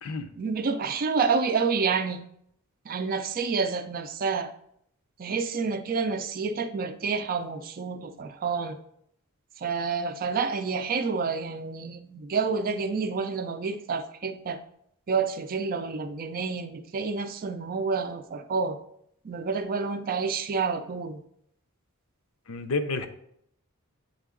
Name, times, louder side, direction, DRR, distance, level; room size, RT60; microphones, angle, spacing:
voice 1, 0.4-2.2 2.9-4.5 5.2-8.8 9.6-14.6 15.1-18.8 19.2-21.2, right 5 dB, 40° right, 9 dB, 0.4 m, -29 dB
voice 2, 22.5-23.1, left 3 dB, 70° left, 9 dB, 0.6 m, -30 dB
8.0 x 3.7 x 3.6 m, 0.72 s
head